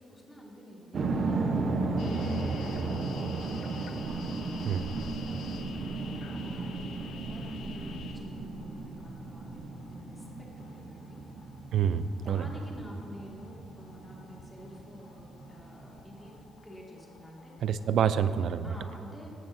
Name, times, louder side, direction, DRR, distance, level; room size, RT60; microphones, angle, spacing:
voice 1, 0.0-4.5 5.0-10.3 10.6-11.2 12.1-16.3 16.6-17.5 18.6-19.3, left 1 dB, 10° left, -3 dB, 1.9 m, -49 dB
sound 1, 0.9-16.5, right 3 dB, 55° right, 0.8 m, -35 dB
sound 2, 2.0-18.1, left 5 dB, 70° left, 0.5 m, -50 dB
voice 2, 11.7-12.5 17.6-18.7, right 8 dB, 70° right, 13 dB, 0.3 m, -27 dB
16.0 x 6.0 x 2.6 m, 3.0 s
cardioid pair, 90°, 0 cm